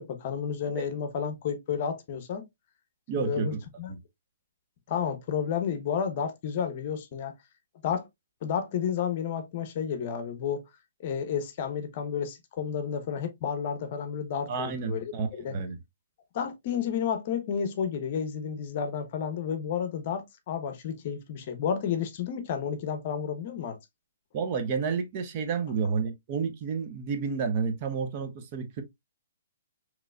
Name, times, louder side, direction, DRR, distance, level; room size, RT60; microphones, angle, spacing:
voice 1, 0.0-2.5 3.2-3.9 4.9-7.3 7.8-8.1 8.4-10.6 11.0-15.0 15.3-15.5 16.3-23.8, left 7 dB, 45° left, 0.8 m, -31 dB
voice 2, 3.1-3.6 3.9-4.0 14.5-15.8 24.3-28.8, right 5 dB, 35° right, 0.7 m, -30 dB
3.8 x 3.1 x 2.3 m
hypercardioid pair, 150°, 0 cm